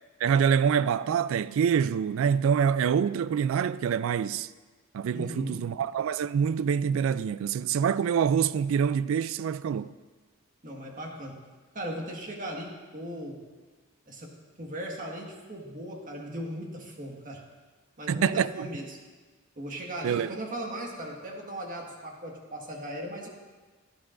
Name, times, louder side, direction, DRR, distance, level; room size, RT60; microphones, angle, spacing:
voice 1, 0.2-4.5 4.9-9.9 18.1-18.7 20.0-20.4, right 7 dB, 65° right, 0.3 m, -26 dB
voice 2, 5.1-5.6 10.6-11.4 11.7-13.4 14.1-14.3 14.6-17.4 18.0-19.0 19.6-23.3, right 1 dB, 40° right, 1.6 m, -38 dB
17.0 x 10.5 x 2.5 m
head